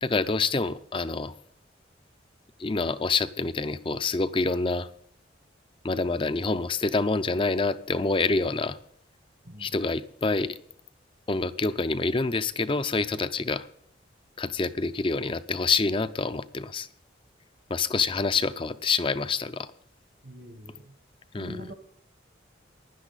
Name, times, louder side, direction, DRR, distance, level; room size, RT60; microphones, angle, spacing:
voice 1, 0.0-1.3 2.6-4.9 5.8-8.8 9.6-10.6 11.3-13.7 14.4-16.9 17.7-19.7 21.3-21.6, left 3 dB, 25° left, 0.5 m, -27 dB
voice 2, 9.4-9.8 20.2-20.9 21.3-21.7, left 1 dB, 55° right, 1.2 m, -43 dB
16.0 x 11.0 x 4.0 m
head